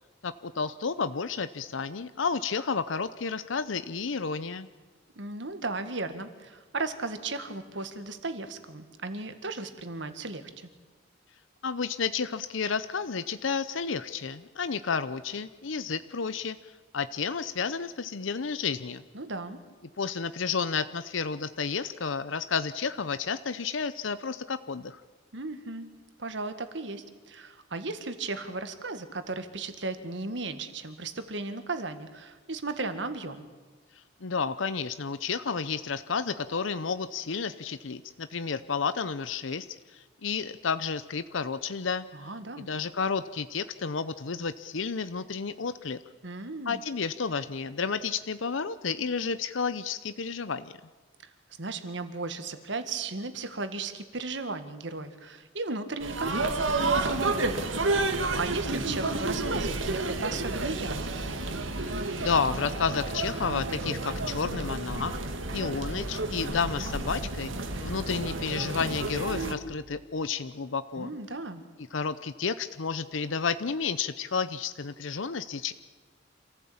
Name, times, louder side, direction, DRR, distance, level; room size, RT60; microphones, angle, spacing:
voice 1, 0.2-4.7 11.6-16.6 16.9-19.0 20.0-25.0 34.2-39.7 39.9-42.3 42.6-46.0 46.7-50.7 61.8-65.2 65.5-71.1 71.9-75.7, left 5 dB, 80° left, 13 dB, 0.7 m, -31 dB
voice 2, 5.2-10.7 19.1-19.6 25.3-25.9 26.2-33.5 42.1-42.7 46.2-46.8 51.2-51.3 51.6-61.2 71.0-71.6, right 3 dB, 65° right, 10 dB, 1.8 m, -36 dB
sound 1, 56.0-69.5, right 2 dB, 85° right, 2.0 m, -30 dB
27.0 x 15.0 x 8.7 m, 1.4 s
head